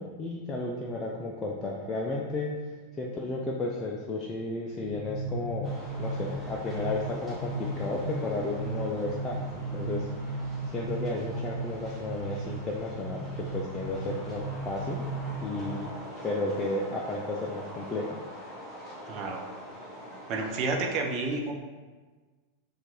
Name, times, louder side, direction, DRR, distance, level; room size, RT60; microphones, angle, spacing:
voice 1, 0.0-2.5 3.0-10.3 10.7-15.1 15.4-15.9 16.2-18.2, left 2 dB, 20° left, -3 dB, 0.5 m, -33 dB
sound 1, 4.8-15.8, right 2 dB, 75° right, 0.9 m, -36 dB
sound 2, 5.6-21.0, equal, 5° left, 1.3 m, -44 dB
voice 2, 19.1-19.4 20.3-21.5, right 3 dB, 35° right, 2 dB, 0.7 m, -30 dB
4.4 x 2.5 x 4.5 m, 1.4 s
figure-of-eight pair, 90°, 0 cm